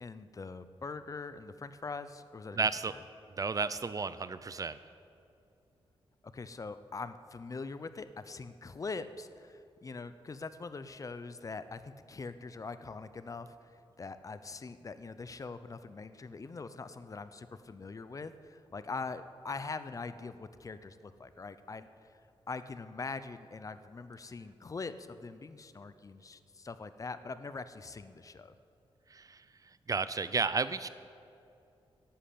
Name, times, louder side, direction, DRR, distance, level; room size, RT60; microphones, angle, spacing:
voice 1, 0.0-2.6 2.9-3.0 6.3-22.2 22.5-28.6, left 4 dB, 35° left, 12 dB, 0.6 m, -43 dB
voice 2, 2.5-2.9 3.4-4.8 29.1-30.9, right 4 dB, 35° right, 14 dB, 0.5 m, -33 dB
11.5 x 11.0 x 8.6 m, 2.7 s
wide cardioid pair, 115°, 10 cm